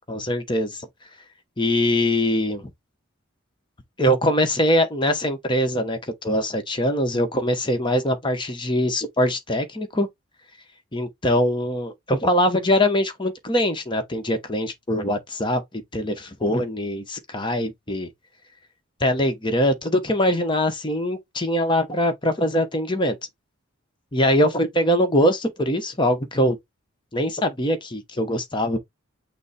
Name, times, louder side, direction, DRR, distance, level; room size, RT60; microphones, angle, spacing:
voice 1, 0.1-0.9 1.6-2.7 4.0-10.1 10.9-15.6 15.9-18.1 19.0-23.2 24.1-26.6 27.1-28.8, equal, 20° left, 0.9 m, -22 dB
6.1 x 2.0 x 4.2 m
head